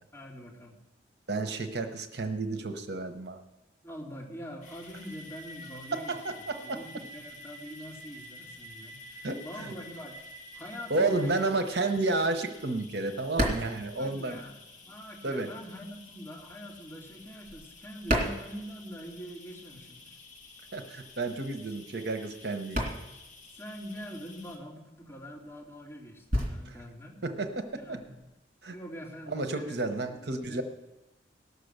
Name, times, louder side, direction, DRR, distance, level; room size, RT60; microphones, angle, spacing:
voice 1, 0.1-0.8 3.8-6.2 6.6-10.1 10.5-11.5 14.0-20.2 23.6-27.2 27.7-28.2 28.7-30.6, equal, 15° left, -4 dB, 2.6 m, -44 dB
voice 2, 1.3-3.4 6.1-6.8 9.2-9.4 10.9-14.4 15.2-15.5 20.7-22.9 26.7-26.8 27.2-27.5 28.6-28.7 29.3-30.6, right 2 dB, 60° right, 7 dB, 0.9 m, -31 dB
sound 1, 4.6-24.6, left 1 dB, 40° left, 2.3 m, -50 dB
sound 2, 12.5-14.9 15.2-19.3 19.6-28.3, equal, 40° right, 2.5 m, -35 dB
18.0 x 6.7 x 6.6 m, 0.98 s
head